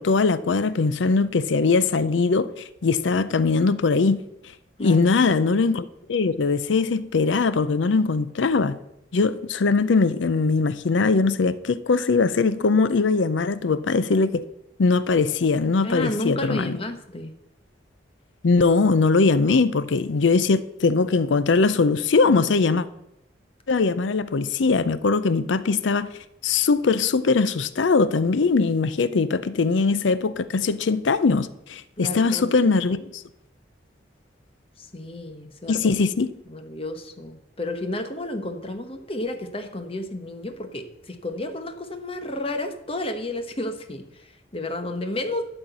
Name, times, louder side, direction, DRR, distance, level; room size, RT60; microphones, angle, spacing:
voice 1, 0.0-4.2 4.8-8.8 9.1-14.4 14.8-16.8 18.4-22.9 23.7-26.1 26.4-33.2 35.7-36.3, left 4 dB, 85° left, 0.5 m, -21 dB
voice 2, 4.8-5.1 15.8-17.3 32.0-32.5 34.8-35.8 36.5-45.5, left 1 dB, 30° left, 1.0 m, -32 dB
12.0 x 4.5 x 7.9 m
head